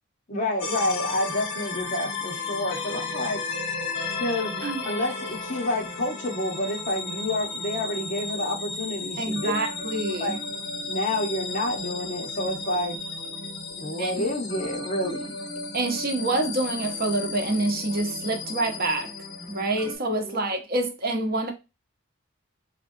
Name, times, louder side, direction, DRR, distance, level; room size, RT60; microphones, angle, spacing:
voice 1, 0.3-3.4 4.2-9.5 10.2-10.4 10.9-13.0 13.8-15.4 20.2-20.5, left 1 dB, 40° left, 1.3 m, -29 dB
sound 1, 0.6-19.9, left 3 dB, 60° left, 1.6 m, -34 dB
voice 2, 9.2-10.4 14.0-14.3 15.7-19.1 19.5-21.5, right 2 dB, 50° right, 0.9 m, -27 dB
3.8 x 3.5 x 2.7 m
head